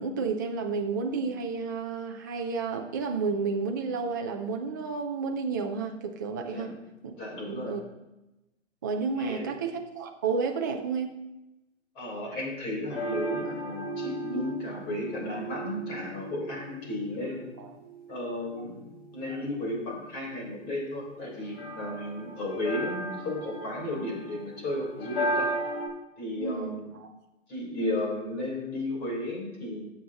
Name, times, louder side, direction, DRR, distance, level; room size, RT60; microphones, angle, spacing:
voice 1, 0.0-6.7 7.0-7.1 7.5-7.8 8.8-11.2 13.8-13.9 17.6-17.7 26.4-27.1, right 5 dB, 15° right, 3 dB, 0.4 m, -31 dB
voice 2, 7.2-7.8 9.1-9.5 11.9-17.5 18.1-18.8 19.1-25.5 26.2-26.9 27.5-29.8, left 1 dB, 25° left, -3 dB, 3.8 m, -34 dB
sound 1, 12.9-25.9, right 1 dB, 50° left, 3.6 m, -36 dB
15.5 x 7.9 x 2.9 m, 0.97 s
hypercardioid pair, 140°, 38 cm